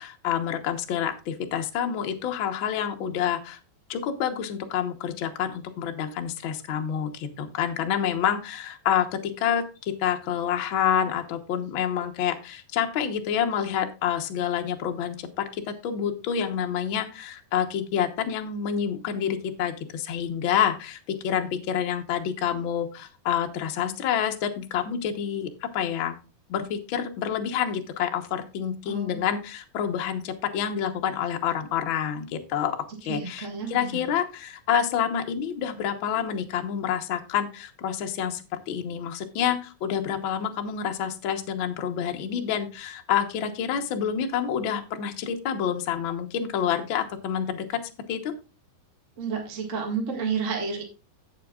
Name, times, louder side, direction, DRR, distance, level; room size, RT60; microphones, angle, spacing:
voice 1, 0.0-3.6 3.9-26.2 26.5-47.8 48.1-48.4, left 8 dB, 85° left, 4 dB, 1.1 m, -28 dB
voice 2, 28.9-29.2 33.1-34.1 49.2-50.8, right 5 dB, 30° right, 1 dB, 1.4 m, -31 dB
17.0 x 6.6 x 2.4 m, 0.32 s
omnidirectional pair, 4.0 m